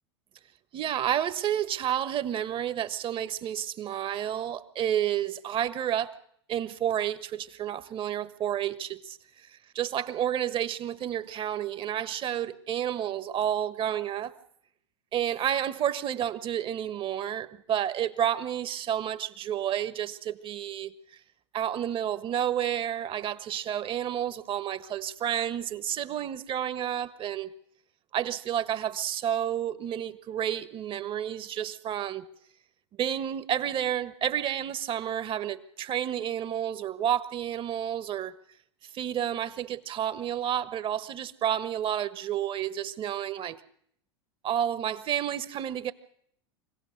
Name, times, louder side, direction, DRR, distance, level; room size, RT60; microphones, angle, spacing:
voice 1, 0.7-6.1 6.5-9.2 9.7-14.3 15.1-20.9 21.5-27.5 28.1-32.2 33.0-38.3 38.9-43.6 44.4-45.9, right 10 dB, 35° right, 1.4 m, -30 dB
25.0 x 17.0 x 6.6 m
hypercardioid pair, 90°, 15 cm